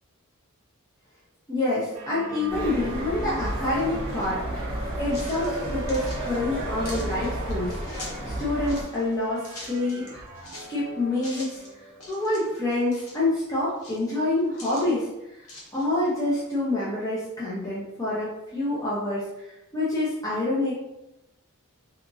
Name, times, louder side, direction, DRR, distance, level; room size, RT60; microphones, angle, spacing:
voice 1, 1.5-7.7 8.2-10.2 10.5-11.6 12.1-15.1 15.3-15.5 15.7-20.7, left 2 dB, 15° left, -9 dB, 0.6 m, -27 dB
sound 1, 1.9-12.1, right 2 dB, 65° right, 0.5 m, -43 dB
sound 2, 2.5-8.8, right 1 dB, 30° right, 1.0 m, -32 dB
sound 3, 5.1-8.2 8.6-10.7 11.1-11.7 12.0-13.2 13.7-14.9 15.4-16.1, left 1 dB, 90° left, 0.9 m, -43 dB
2.9 x 2.4 x 2.6 m, 0.92 s
head